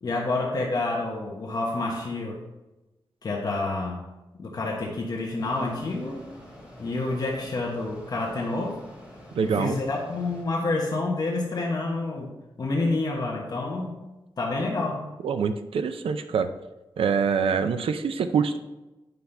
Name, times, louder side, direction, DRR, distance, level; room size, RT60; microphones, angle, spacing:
voice 1, 0.0-2.4 3.2-4.0 4.3-6.2 6.8-8.8 9.4-12.3 12.6-14.0 14.4-15.1, left 2 dB, 45° left, -2 dB, 1.2 m, -28 dB
Mechanisms, 5.4-10.4, equal, 10° right, 1.9 m, -47 dB
voice 2, 9.3-9.8 15.2-16.5 17.0-18.6, right 6 dB, 80° right, 9 dB, 0.5 m, -25 dB
9.3 x 5.7 x 3.4 m, 1.0 s
wide cardioid pair, 175°, 9 cm